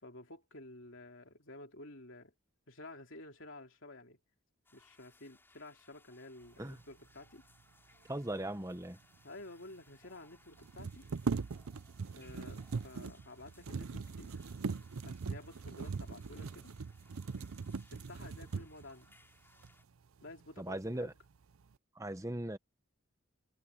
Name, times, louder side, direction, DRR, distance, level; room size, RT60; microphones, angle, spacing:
voice 1, 0.0-2.3 2.7-4.2 4.7-7.4 9.2-11.1 11.7-11.8 12.1-14.3 15.0-16.7 17.9-19.1 20.2-21.1, left 2 dB, 60° left, 3.0 m, -52 dB
sound 1, 4.7-19.9, left 2 dB, 10° left, 6.9 m, -67 dB
voice 2, 8.1-9.0 20.6-21.1 22.0-22.6, right 1 dB, 15° right, 1.0 m, -38 dB
sound 2, 9.1-9.2 9.4-9.5 10.6-18.9 19.6-19.7 20.2-20.8 21.2-21.7, right 4 dB, 75° right, 0.5 m, -40 dB
head